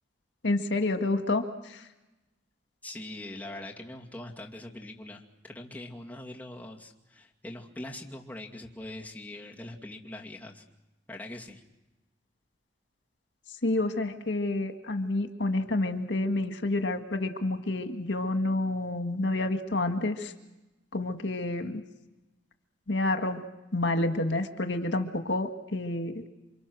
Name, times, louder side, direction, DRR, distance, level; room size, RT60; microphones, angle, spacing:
voice 1, 0.4-1.8 13.6-20.3 20.9-21.8 22.9-23.4 23.7-26.2, left 2 dB, 90° left, 6 dB, 1.7 m, -29 dB
voice 2, 2.8-10.6 11.1-11.6, left 1 dB, 10° left, -1 dB, 2.4 m, -42 dB
28.5 x 25.5 x 6.3 m, 1.0 s
head